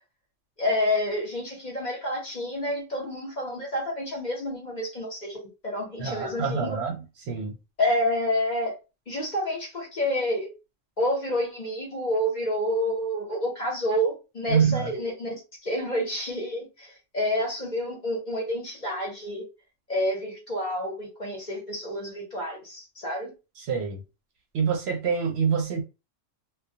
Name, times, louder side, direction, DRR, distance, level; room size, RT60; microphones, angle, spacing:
voice 1, 0.6-6.8 7.8-8.7 9.1-10.5 11.0-15.3 15.6-19.5 19.9-23.3, left 1 dB, 45° left, 0.7 m, -29 dB
voice 2, 6.0-7.0 7.3-7.5 14.5-14.9 23.7-24.0 24.5-25.8, right 6 dB, 65° right, 0.7 m, -25 dB
2.2 x 2.1 x 2.6 m
omnidirectional pair, 1.3 m